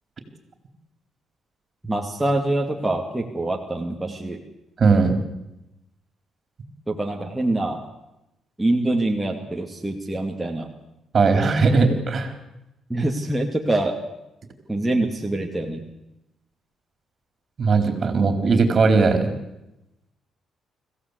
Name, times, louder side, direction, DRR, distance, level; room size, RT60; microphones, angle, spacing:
voice 1, 1.8-4.4 6.9-7.8 8.6-10.7 12.9-14.0 14.7-15.8, right 2 dB, 10° right, 1 dB, 2.5 m, -25 dB
voice 2, 4.8-5.1 11.1-12.3 17.6-19.3, right 4 dB, 45° right, 7 dB, 4.2 m, -18 dB
25.5 x 16.0 x 8.4 m, 0.93 s
cardioid pair, 90°, 0 cm